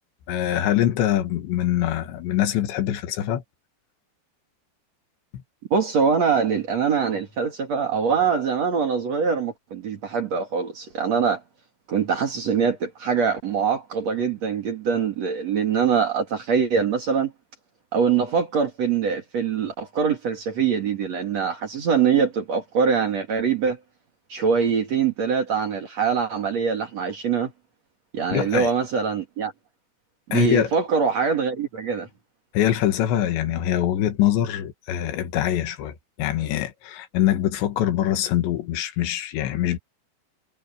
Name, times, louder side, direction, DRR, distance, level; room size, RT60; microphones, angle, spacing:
voice 1, 0.3-3.4 28.3-28.7 30.3-30.7 32.5-39.8, left 11 dB, 80° left, 3.8 m, -23 dB
voice 2, 5.7-11.4 11.9-17.3 17.9-23.8 24.3-27.5 28.1-29.5 30.3-32.1, right 6 dB, 45° right, 2.8 m, -23 dB
omnidirectional pair, 5.1 m